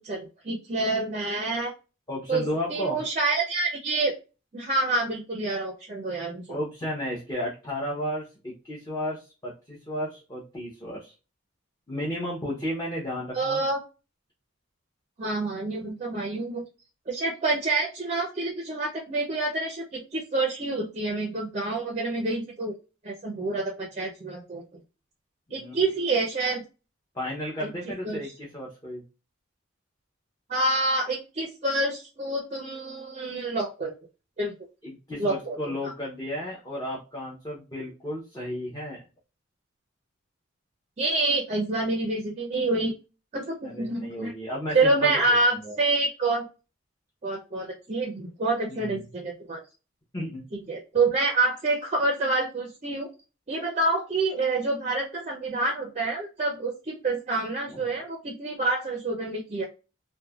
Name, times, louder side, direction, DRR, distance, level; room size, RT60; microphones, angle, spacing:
voice 1, 0.0-1.7 2.3-2.4 2.7-4.1 4.5-6.6 13.3-13.8 15.2-16.6 17.1-22.7 23.0-24.6 25.5-26.6 27.6-28.3 30.5-33.9 34.4-34.5 35.2-35.6 41.0-42.9 43.3-44.3 44.7-46.5 47.2-49.6 50.7-53.1 53.5-59.6, right 2 dB, 30° right, 1 dB, 0.4 m, -27 dB
voice 2, 2.1-3.0 6.5-11.1 11.9-13.6 25.5-25.7 27.1-29.0 34.8-39.0 43.6-45.4 45.6-45.7 48.7-49.0 50.1-50.4, left 1 dB, 20° left, -5 dB, 0.7 m, -33 dB
3.1 x 2.1 x 2.2 m, 0.31 s
head